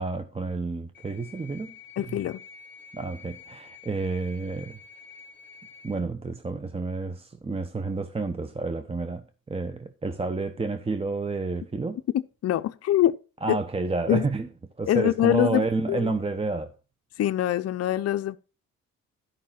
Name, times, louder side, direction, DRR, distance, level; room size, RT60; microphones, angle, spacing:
voice 1, 0.0-1.7 2.1-2.2 2.9-4.8 5.8-12.0 13.4-14.5 14.8-16.7, right 3 dB, 20° right, 0.9 m, -30 dB
sound 1, 0.9-6.0, left 6 dB, 35° left, 2.2 m, -48 dB
voice 2, 2.0-2.4 12.4-13.2 13.5-13.6 14.1-14.2 14.9-16.1 17.2-18.4, left 12 dB, 55° left, 0.6 m, -24 dB
12.0 x 5.6 x 5.8 m
cardioid pair, 90°, 30 cm